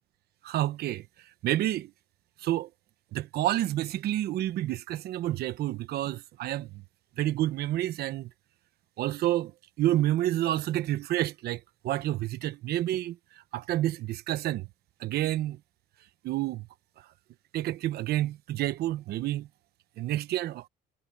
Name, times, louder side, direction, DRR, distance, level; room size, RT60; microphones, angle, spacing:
voice 1, 0.4-1.1 1.4-1.9 2.4-2.7 3.1-6.8 7.2-8.3 9.0-9.5 9.8-13.2 13.5-14.7 15.0-15.6 16.2-16.7 17.5-19.5 20.0-20.7, right 14 dB, 70° right, 1.0 m, -29 dB
cardioid pair, 110°, 17 cm